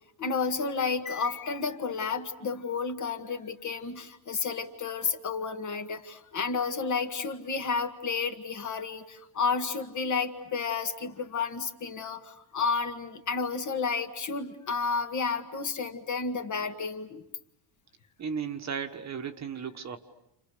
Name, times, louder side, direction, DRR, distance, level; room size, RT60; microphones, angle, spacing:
voice 1, 0.2-17.3, left 5 dB, 35° left, 6 dB, 1.9 m, -31 dB
voice 2, 18.2-20.0, right 6 dB, 35° right, 7 dB, 1.4 m, -35 dB
29.5 x 29.5 x 6.8 m, 0.82 s
cardioid pair, 165°, 48 cm